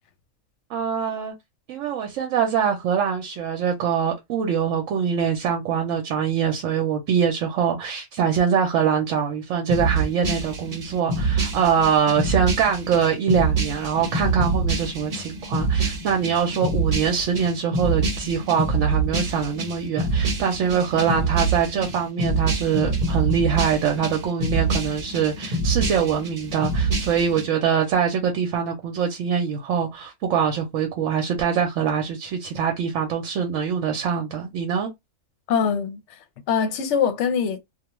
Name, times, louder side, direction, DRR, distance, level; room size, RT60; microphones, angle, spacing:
voice 1, 0.7-1.3 1.7-34.9, right 7 dB, 80° right, 0.9 m, -23 dB
sound 1, 9.7-27.4, right 3 dB, 45° right, 0.8 m, -25 dB
voice 2, 35.5-36.0 36.5-37.6, left 7 dB, 70° left, 0.8 m, -22 dB
2.3 x 2.3 x 2.9 m
omnidirectional pair, 1.3 m